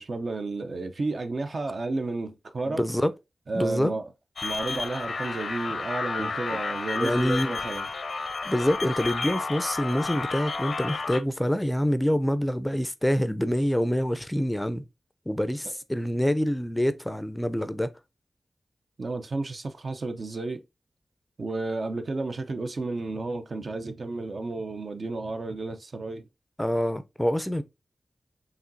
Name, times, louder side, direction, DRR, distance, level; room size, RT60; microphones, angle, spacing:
voice 1, 0.0-2.8 3.5-4.1 4.4-7.9 15.6-15.7 19.0-20.6 21.4-26.3, right 3 dB, 60° right, 0.5 m, -32 dB
voice 2, 2.7-3.1 3.5-3.9 6.2-6.3 7.0-7.5 8.4-14.8 15.3-17.9 26.6-27.6, equal, 10° left, 0.4 m, -26 dB
sound 1, 4.4-11.2, left 4 dB, 75° left, 0.6 m, -31 dB
4.9 x 3.0 x 2.6 m
cardioid pair, 60°, 0 cm